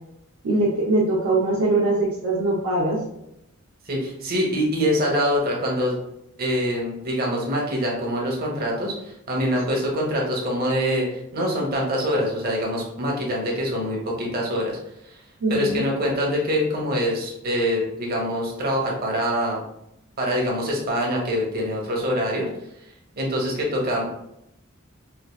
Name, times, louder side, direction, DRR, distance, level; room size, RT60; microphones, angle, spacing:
voice 1, 0.4-3.0 15.4-15.8, right 2 dB, 75° right, -6 dB, 0.8 m, -22 dB
voice 2, 3.9-5.9 6.4-14.8 15.1-15.2 15.5-19.6 20.2-22.5 23.2-24.1, equal, 45° right, -2 dB, 0.9 m, -24 dB
4.6 x 2.5 x 2.3 m, 0.80 s
head